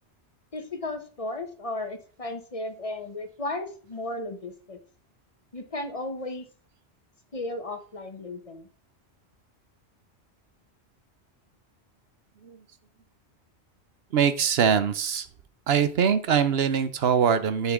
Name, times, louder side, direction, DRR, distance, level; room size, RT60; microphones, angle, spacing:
voice 1, 0.5-4.8 5.5-6.5 7.3-8.7, left 2 dB, 35° left, 7 dB, 1.1 m, -35 dB
voice 2, 14.1-15.3 15.7-17.7, right 7 dB, 70° right, 12 dB, 1.0 m, -23 dB
7.8 x 5.8 x 3.7 m, 0.42 s
omnidirectional pair, 1.1 m